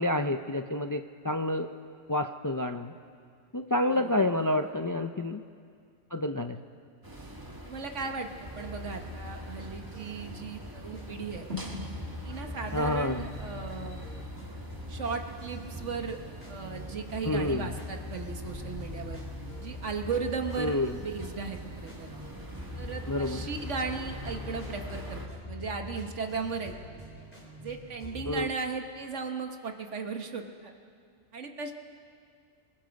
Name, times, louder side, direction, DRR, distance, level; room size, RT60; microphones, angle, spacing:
voice 1, 0.0-1.7 2.1-2.9 3.5-5.4 6.1-6.6 12.7-13.2 17.2-17.7 20.6-21.0 23.1-23.5 28.3-28.5, left 1 dB, 35° left, 7 dB, 0.3 m, -29 dB
voice 2, 3.9-4.7 7.6-11.5 12.2-14.0 14.9-16.2 16.5-19.2 19.6-22.1 22.7-26.7 27.6-30.7 31.3-31.7, right 5 dB, 75° right, 4 dB, 1.6 m, -36 dB
sound 1, 7.0-25.3, right 1 dB, 15° right, 1.5 m, -45 dB
sound 2, 7.2-15.7 16.1-16.2, left 3 dB, 55° right, 3.1 m, -47 dB
sound 3, 8.4-28.3, left 2 dB, 10° left, 3.7 m, -43 dB
29.5 x 20.5 x 5.3 m, 2.2 s
omnidirectional pair, 1.3 m